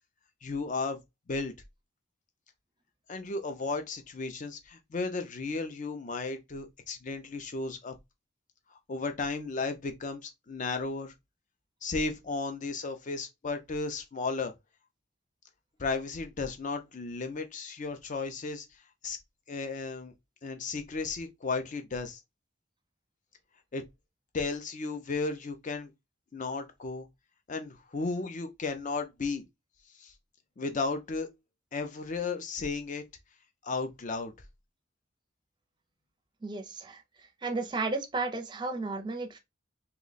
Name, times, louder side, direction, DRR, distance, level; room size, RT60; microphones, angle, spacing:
voice 1, 0.4-1.0 1.3-1.5 3.1-7.9 8.9-11.1 11.8-14.5 15.8-18.7 19.0-19.2 19.5-20.1 20.4-22.2 23.7-23.8 24.3-25.9 26.3-27.1 27.5-29.4 30.0-30.1 30.6-31.3 31.7-33.0 33.6-34.3, left 3 dB, 40° left, 0.5 m, -34 dB
voice 2, 36.4-37.0 37.4-39.4, right 3 dB, 25° right, 0.5 m, -33 dB
2.9 x 2.2 x 4.0 m
head